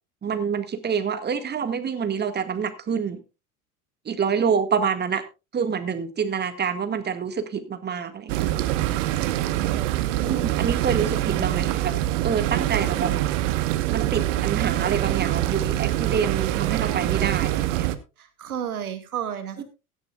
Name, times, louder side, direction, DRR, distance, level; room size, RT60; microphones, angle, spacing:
voice 1, 0.2-3.2 4.1-5.2 5.5-8.6 10.3-12.0 12.2-13.1 13.9-17.9 19.6-19.7, right 6 dB, 20° right, 1.9 m, -27 dB
sound 1, 8.3-18.0, right 14 dB, 55° right, 1.3 m, -24 dB
voice 2, 9.5-10.5 18.2-19.6, right 9 dB, 75° right, 2.7 m, -33 dB
16.5 x 12.5 x 2.4 m
figure-of-eight pair, 80°, 45 cm